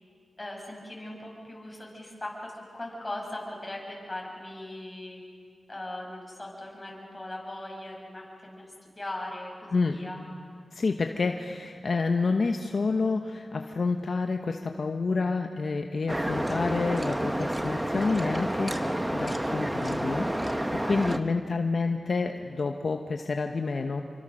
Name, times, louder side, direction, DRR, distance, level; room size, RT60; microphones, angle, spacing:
voice 1, 0.4-5.2 5.7-8.6 9.0-10.2, left 1 dB, 20° left, -2 dB, 7.0 m, -39 dB
voice 2, 10.7-24.0, left 4 dB, 60° left, 4 dB, 1.1 m, -29 dB
sound 1, 16.1-21.2, right 1 dB, 10° right, 1.1 m, -29 dB
28.0 x 24.0 x 6.5 m, 2.1 s
wide cardioid pair, 80°, 0 cm